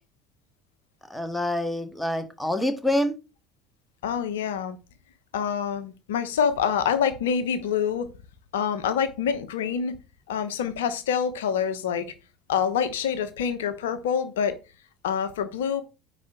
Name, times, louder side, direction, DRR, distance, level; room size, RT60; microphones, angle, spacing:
voice 1, 1.1-3.1, left 1 dB, 5° left, 1.8 m, -26 dB
voice 2, 4.0-4.8 5.3-8.1 8.5-10.0 10.3-12.1 12.5-14.6 15.0-15.8, left 7 dB, 70° left, 1.0 m, -26 dB
9.6 x 4.2 x 5.0 m
figure-of-eight pair, 65°, 0 cm